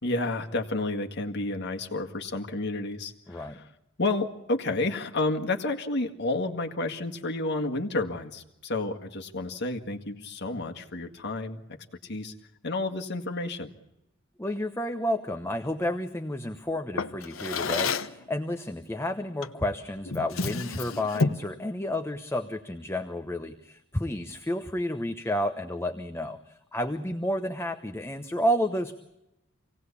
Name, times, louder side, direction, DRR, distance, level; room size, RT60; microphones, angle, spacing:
voice 1, 0.0-3.6 4.0-11.6 12.0-12.3 12.6-13.7, left 2 dB, 55° left, 4 dB, 1.9 m, -30 dB
voice 2, 3.3-3.6 14.4-28.9, left 1 dB, 10° left, 6 dB, 1.0 m, -31 dB
Drawer open or close, 17.0-18.2 19.4-19.6 20.1-21.5, left 4 dB, 80° left, 1.0 m, -30 dB
26.5 x 18.0 x 8.4 m, 0.89 s
head